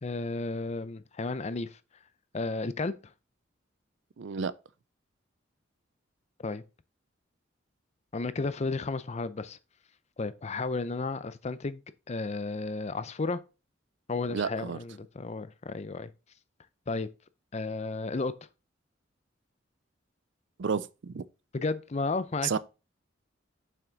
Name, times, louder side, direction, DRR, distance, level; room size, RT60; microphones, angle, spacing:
voice 1, 0.0-1.8 2.3-2.9 6.4-6.6 8.1-9.6 10.2-11.8 12.1-13.4 14.1-16.1 16.9-17.1 17.5-18.3 21.5-22.6, left 3 dB, 35° left, 0.5 m, -33 dB
voice 2, 4.2-4.5 14.3-14.8 20.6-21.2 22.4-22.6, right 6 dB, 65° right, 0.5 m, -31 dB
7.2 x 5.9 x 4.0 m
head